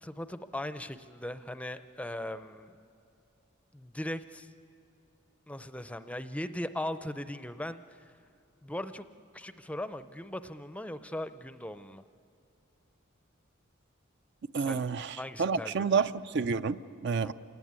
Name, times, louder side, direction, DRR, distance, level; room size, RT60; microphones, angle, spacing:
voice 1, 0.0-2.7 3.7-4.5 5.5-7.8 8.6-9.0 9.3-12.0 14.6-14.9 15.2-16.0 17.2-17.3, left 1 dB, 5° left, 11 dB, 0.5 m, -39 dB
voice 2, 14.5-17.3, right 5 dB, 55° right, 12 dB, 0.5 m, -29 dB
27.5 x 17.5 x 9.6 m, 2.5 s
head